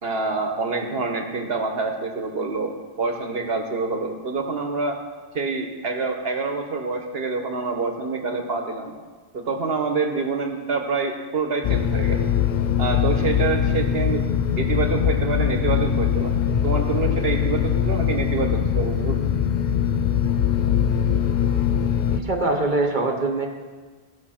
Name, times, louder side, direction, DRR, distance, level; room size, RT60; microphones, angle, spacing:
voice 1, 0.0-5.0 5.3-8.9 9.3-12.3 12.8-14.2 14.6-16.3 16.6-19.2, right 4 dB, 70° right, 4 dB, 1.4 m, -26 dB
sound 1, 11.6-22.2, left 8 dB, 55° left, 0.6 m, -22 dB
voice 2, 22.1-23.5, right 2 dB, 50° right, 3 dB, 1.4 m, -23 dB
16.0 x 5.9 x 5.8 m, 1.4 s
omnidirectional pair, 1.1 m